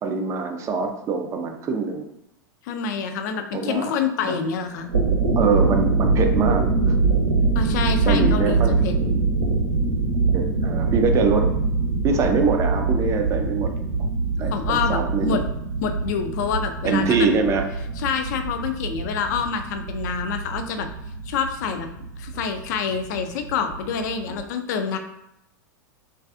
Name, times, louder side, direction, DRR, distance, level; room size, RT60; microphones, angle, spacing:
voice 1, 0.0-2.1 3.5-3.9 4.3-4.4 5.4-6.9 8.1-8.8 10.3-11.5 12.0-13.8 14.4-15.4 16.8-17.7, right 4 dB, 30° right, 5 dB, 0.4 m, -23 dB
voice 2, 2.6-4.9 7.5-9.0 14.5-15.4 15.8-17.2 18.0-20.9 21.3-21.9 22.2-25.0, left 6 dB, 60° left, 7 dB, 0.3 m, -27 dB
sound 1, 4.7-24.4, right 3 dB, 80° right, 0.6 m, -24 dB
2.5 x 2.3 x 2.3 m, 0.82 s
hypercardioid pair, 95°, 11 cm